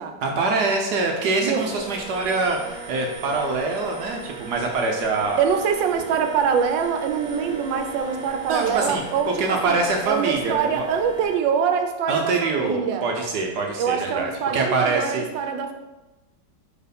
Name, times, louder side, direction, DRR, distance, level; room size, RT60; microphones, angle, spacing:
voice 1, 0.2-5.4 8.5-10.8 12.1-15.2, right 3 dB, 70° right, 2 dB, 1.2 m, -24 dB
sound 1, 1.6-11.4, right 5 dB, 20° right, 1.0 m, -39 dB
voice 2, 5.4-9.3 9.6-9.8 10.1-13.1 13.8-15.7, right 7 dB, 85° right, 6 dB, 1.4 m, -24 dB
5.0 x 4.5 x 5.1 m, 1.1 s
omnidirectional pair, 2.0 m